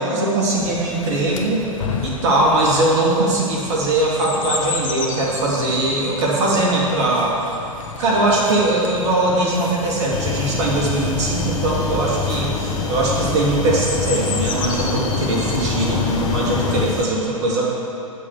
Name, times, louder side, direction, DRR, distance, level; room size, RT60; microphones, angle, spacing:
voice 1, 0.1-1.6 2.0-7.3 8.0-17.7, right 2 dB, 50° right, -4 dB, 2.5 m, -20 dB
Chirp tweet, 0.6-16.8, left 4 dB, 65° left, 1.0 m, -30 dB
sound 1, 10.1-17.0, left 5 dB, 20° left, 0.9 m, -26 dB
7.9 x 6.6 x 7.1 m, 2.9 s
figure-of-eight pair, 100°, 18 cm